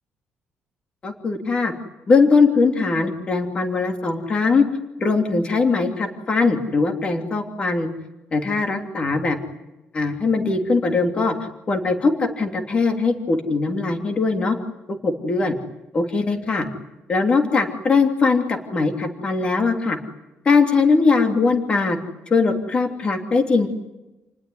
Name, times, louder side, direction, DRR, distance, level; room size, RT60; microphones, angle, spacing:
voice 1, 1.0-1.7 2.1-4.6 5.0-7.9 8.3-9.4 9.9-11.3 11.7-14.6 15.0-15.5 15.9-16.7 17.1-20.0 20.4-22.0 22.3-23.7, left 4 dB, 25° left, 5 dB, 3.0 m, -20 dB
29.5 x 20.0 x 9.6 m, 1.0 s
cardioid pair, 180°, 4 cm